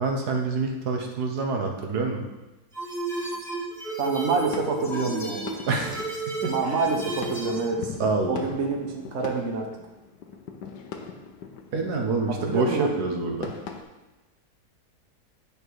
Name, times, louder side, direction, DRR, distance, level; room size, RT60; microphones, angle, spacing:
voice 1, 0.0-2.2 5.7-6.7 8.0-8.5 11.7-13.5, right 3 dB, 70° right, 2 dB, 1.6 m, -27 dB
sound 1, 2.7-7.6, right 2 dB, ahead, 1.8 m, -33 dB
voice 2, 4.0-5.5 6.5-7.9 8.3-9.7 12.3-13.0, right 4 dB, 50° right, 2 dB, 1.1 m, -27 dB
sound 2, 4.2-13.8, left 6 dB, 85° left, 1.4 m, -41 dB
8.7 x 5.2 x 4.7 m, 1.1 s
omnidirectional pair, 1.7 m